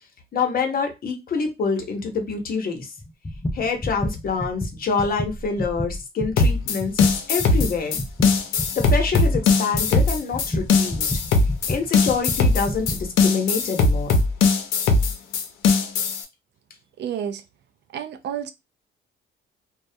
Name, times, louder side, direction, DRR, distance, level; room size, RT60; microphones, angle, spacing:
voice 1, 0.3-2.9 3.5-8.0 8.7-11.1 11.7-14.2, left 5 dB, 45° left, 0.8 m, -26 dB
sound 1, 3.0-13.1, left 1 dB, 15° left, 0.4 m, -30 dB
sound 2, 6.4-16.2, left 4 dB, 85° left, 0.5 m, -20 dB
voice 2, 17.0-17.4 17.9-18.5, right 9 dB, 60° right, 0.4 m, -30 dB
2.2 x 2.1 x 2.6 m
cardioid pair, 90°, 20 cm